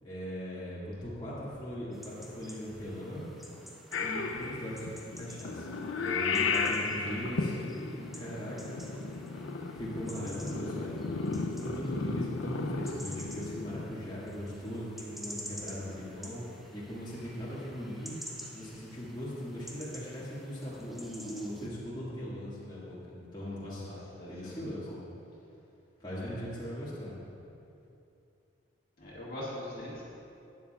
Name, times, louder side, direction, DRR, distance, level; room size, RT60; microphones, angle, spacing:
voice 1, 0.0-3.2 4.0-8.8 9.7-16.4 16.7-18.2 18.5-23.9 24.3-24.9 26.0-27.1, equal, 20° left, -10 dB, 2.0 m, -39 dB
sound 1, 1.9-21.7, equal, ahead, 0.7 m, -50 dB
Purr / Meow, 3.9-13.9, left 4 dB, 80° left, 0.5 m, -34 dB
voice 2, 11.1-11.6 17.2-17.4 23.8-25.0 26.2-26.4 29.0-30.0, left 1 dB, 50° left, -8 dB, 2.0 m, -43 dB
12.5 x 9.9 x 2.4 m, 2.7 s
head